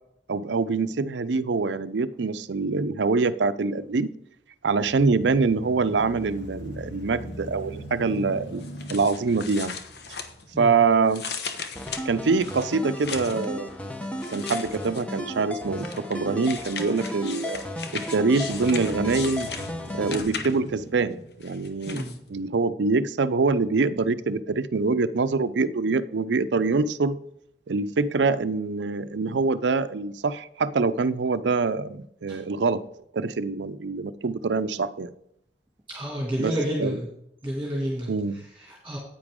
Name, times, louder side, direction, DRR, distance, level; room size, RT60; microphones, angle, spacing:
voice 1, 0.3-4.1 4.6-8.6 8.9-9.7 10.6-11.2 12.1-13.7 14.3-17.6 17.9-19.5 19.9-27.2 27.7-32.8 33.1-35.1 36.4-37.0 38.1-38.4, right 4 dB, 85° right, 14 dB, 0.5 m, -25 dB
sound 1, 4.7-12.8 13.3-13.4 17.9-22.4, equal, 90° left, 2.0 m, -42 dB
sound 2, 8.6-10.7 11.1-13.5 14.2-15.2 15.8-20.8 21.4-22.2, left 5 dB, 70° left, 1.1 m, -37 dB
sound 3, 11.8-20.2, left 1 dB, 5° left, 0.8 m, -35 dB
voice 2, 21.9-22.2 32.3-32.4 35.9-37.0 37.4-38.1 38.6-39.0, equal, 10° right, -3 dB, 2.3 m, -30 dB
9.8 x 8.9 x 3.7 m, 0.77 s
head